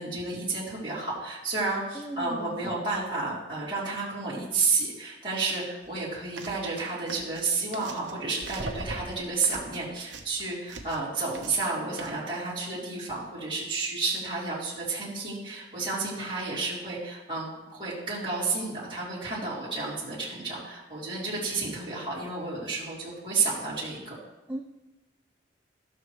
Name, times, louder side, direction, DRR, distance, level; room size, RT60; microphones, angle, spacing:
voice 1, 0.0-24.1, right 3 dB, 30° right, -11 dB, 3.3 m, -31 dB
voice 2, 1.9-2.7 24.5-24.6, right 1 dB, 10° right, 1 dB, 0.6 m, -36 dB
sound 1, 5.8-6.0 6.4-6.7 7.1-8.2 8.4-11.1 11.3-11.7 12.0-12.1, right 2 dB, 75° right, 1.1 m, -40 dB
16.0 x 6.6 x 3.2 m, 1.0 s
head